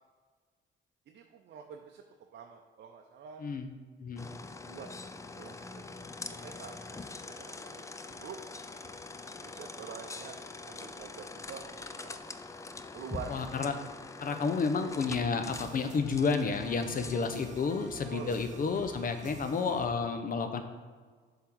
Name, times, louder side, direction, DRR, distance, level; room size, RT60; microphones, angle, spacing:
voice 1, 1.1-2.0 2.3-3.5 4.3-5.9 6.3-6.8 7.3-8.4 9.4-10.4 10.7-12.4 12.9-13.5 14.3-14.4 18.1-18.3, right 6 dB, 60° right, 3 dB, 0.6 m, -47 dB
voice 2, 3.4-3.7 4.0-4.3 13.3-13.7 14.2-20.6, left 5 dB, 45° left, 7 dB, 0.7 m, -31 dB
sound 1, 4.2-18.6, left 3 dB, 15° left, 0.4 m, -44 dB
sound 2, 14.9-19.9, right 2 dB, 40° right, 1.0 m, -48 dB
7.2 x 3.7 x 4.6 m, 1.5 s
cardioid pair, 90°, 20 cm